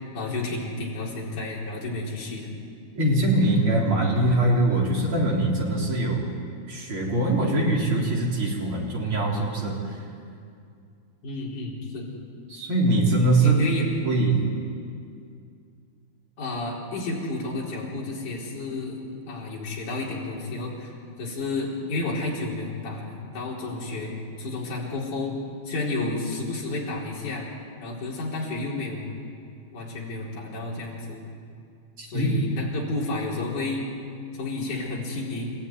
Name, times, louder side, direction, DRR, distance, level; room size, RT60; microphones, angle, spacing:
voice 1, 0.1-2.5 11.2-12.1 13.4-13.9 16.4-19.0 19.3-25.4 25.7-27.5 27.8-29.2 29.7-31.2 32.0-33.8 34.4-35.5, left 2 dB, 50° left, -4 dB, 5.6 m, -31 dB
voice 2, 2.9-6.2 6.7-10.0 12.5-13.6 14.0-14.4 32.0-32.3, right 2 dB, 35° right, -2 dB, 4.3 m, -22 dB
29.5 x 15.0 x 9.7 m, 2.4 s
omnidirectional pair, 4.5 m